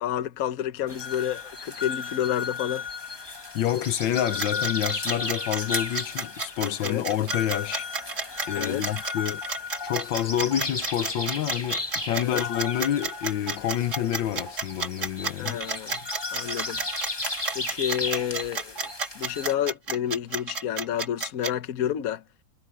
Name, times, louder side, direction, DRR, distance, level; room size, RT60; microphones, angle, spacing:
voice 1, 0.0-2.8 6.8-7.0 8.5-8.9 12.2-12.4 15.4-16.0 16.3-16.8 17.5-22.2, left 10 dB, 55° left, 1.3 m, -30 dB
sound 1, 0.9-19.5, left 3 dB, 15° left, 1.3 m, -34 dB
voice 2, 3.5-7.9 8.5-9.4 9.8-15.6, left 11 dB, 80° left, 1.5 m, -28 dB
sound 2, 4.4-21.5, right 4 dB, 40° right, 2.2 m, -31 dB
omnidirectional pair, 2.0 m